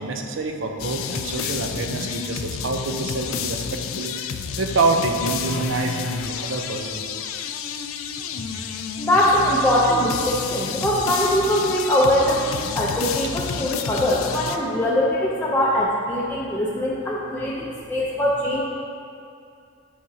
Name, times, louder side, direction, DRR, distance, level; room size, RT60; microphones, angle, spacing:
voice 1, 0.0-7.0, right 3 dB, 65° right, 3 dB, 0.6 m, -26 dB
sound 1, 0.8-14.6, left 7 dB, 85° left, 0.4 m, -30 dB
voice 2, 9.0-18.6, left 1 dB, 10° left, -6 dB, 0.5 m, -22 dB
8.5 x 5.0 x 2.7 m, 2.5 s
head